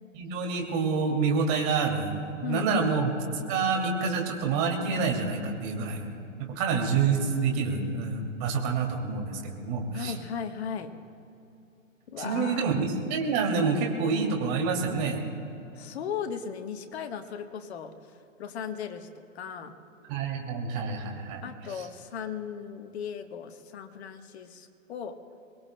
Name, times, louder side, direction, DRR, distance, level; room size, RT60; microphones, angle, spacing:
voice 1, 0.1-3.1 3.5-10.1 12.2-15.3 20.1-21.4, right 5 dB, 30° right, 1 dB, 2.5 m, -28 dB
voice 2, 2.4-2.8 9.9-10.9 12.1-12.8 15.7-17.9 18.4-19.1 19.3-19.7 21.4-25.2, left 7 dB, 55° left, 7 dB, 1.2 m, -36 dB
23.5 x 21.0 x 2.2 m, 2.8 s
hypercardioid pair, 135°, 39 cm